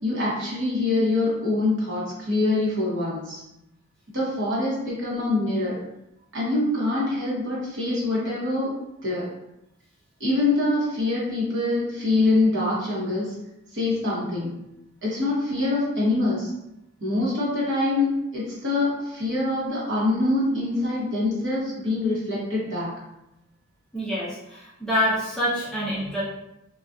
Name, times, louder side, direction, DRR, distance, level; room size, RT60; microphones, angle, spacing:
voice 1, 0.0-3.4 4.1-5.8 6.3-8.7 9.0-9.3 10.2-13.3 13.7-14.6 15.0-16.5 17.0-22.9, left 2 dB, 55° right, -6 dB, 0.9 m, -24 dB
voice 2, 23.9-26.2, equal, 5° left, -9 dB, 0.5 m, -26 dB
2.5 x 2.3 x 2.3 m, 0.87 s
head